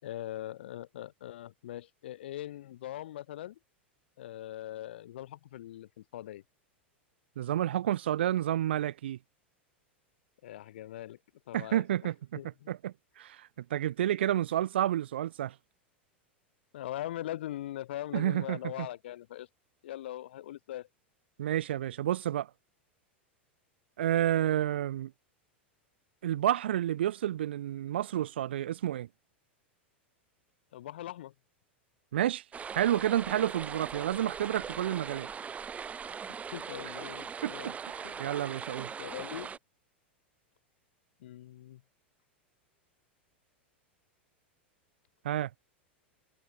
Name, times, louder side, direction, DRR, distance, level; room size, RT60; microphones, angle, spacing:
voice 1, 0.0-3.6 4.2-6.4 10.4-11.2 11.5-12.1 12.4-12.7 16.7-19.5 19.8-20.9 30.7-31.3 36.3-37.8 38.0-38.2 38.8-39.5 41.2-41.8, left 13 dB, 65° left, 6.9 m, -41 dB
voice 2, 7.4-9.2 11.5-12.4 12.7-15.5 18.1-18.6 21.4-22.5 24.0-25.1 26.2-29.1 32.1-32.4 32.7-35.3 37.4-38.9 45.2-45.5, right 12 dB, 65° right, 2.9 m, -30 dB
sound 1, 32.5-39.6, right 6 dB, 20° right, 7.8 m, -40 dB
figure-of-eight pair, 90°, 6 cm